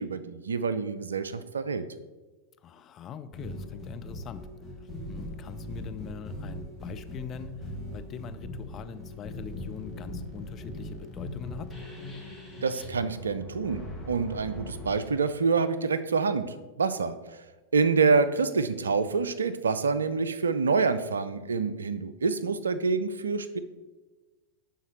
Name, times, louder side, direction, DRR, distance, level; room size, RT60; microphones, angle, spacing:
voice 1, 0.0-1.8 12.6-17.4 17.7-23.6, right 4 dB, 70° right, 13 dB, 0.4 m, -27 dB
voice 2, 2.6-4.5 4.8-11.7, left 8 dB, 30° left, 9 dB, 0.4 m, -43 dB
sound 1, 3.3-14.9, left 1 dB, 5° right, 1.9 m, -40 dB
11.0 x 4.0 x 3.0 m, 1.2 s
figure-of-eight pair, 90°, 0 cm